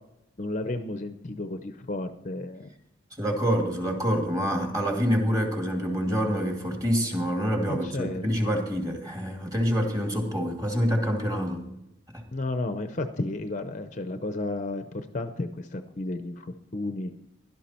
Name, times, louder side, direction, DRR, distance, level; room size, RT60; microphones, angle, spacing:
voice 1, 0.4-2.7 7.7-8.3 12.3-17.1, left 2 dB, 35° left, 9 dB, 0.7 m, -32 dB
voice 2, 3.2-11.6 12.1-12.2, equal, 20° right, 2 dB, 2.5 m, -26 dB
16.5 x 12.0 x 4.4 m, 0.84 s
head